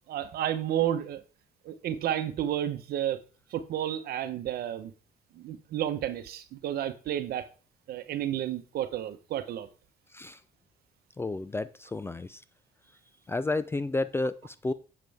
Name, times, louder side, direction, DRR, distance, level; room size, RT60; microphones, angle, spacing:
voice 1, 0.1-1.2 1.6-3.2 3.5-4.9 5.3-7.5 7.9-9.7, right 11 dB, 65° right, 0.9 m, -31 dB
voice 2, 11.2-12.4 13.3-14.7, left 2 dB, 15° left, 0.3 m, -31 dB
7.6 x 7.5 x 3.5 m
cardioid pair, 110°, 17 cm